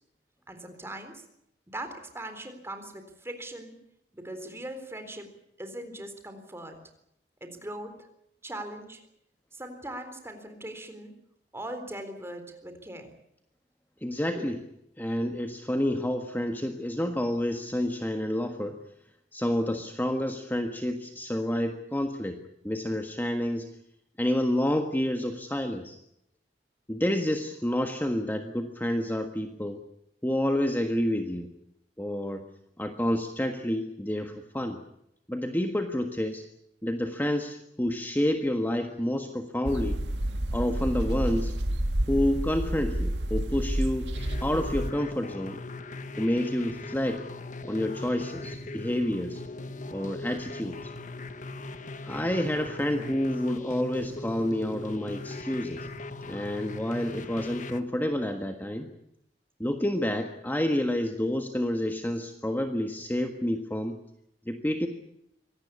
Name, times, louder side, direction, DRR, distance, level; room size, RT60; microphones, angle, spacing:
voice 1, 0.5-1.2 1.7-3.7 4.1-5.3 5.6-6.8 7.4-8.0 8.4-9.0 9.5-11.1 11.5-13.1 14.3-14.5, right 1 dB, 15° right, 7 dB, 3.8 m, -40 dB
voice 2, 14.0-14.6 15.0-18.8 19.3-22.4 22.6-23.7 24.2-26.0 26.9-29.8 30.2-31.5 32.0-32.5 32.8-34.8 35.3-36.5 36.8-40.0 40.5-41.5 42.1-44.1 44.4-45.6 46.2-47.2 47.6-49.4 49.9-50.9 52.0-55.9 56.3-58.9 59.6-64.0 64.4-64.9, left 1 dB, 10° left, 5 dB, 1.5 m, -29 dB
sound 1, 39.6-44.9, right 1 dB, 80° right, 2.0 m, -29 dB
sound 2, 44.1-57.8, left 2 dB, 45° left, 1.4 m, -39 dB
24.5 x 18.0 x 8.5 m, 0.77 s
head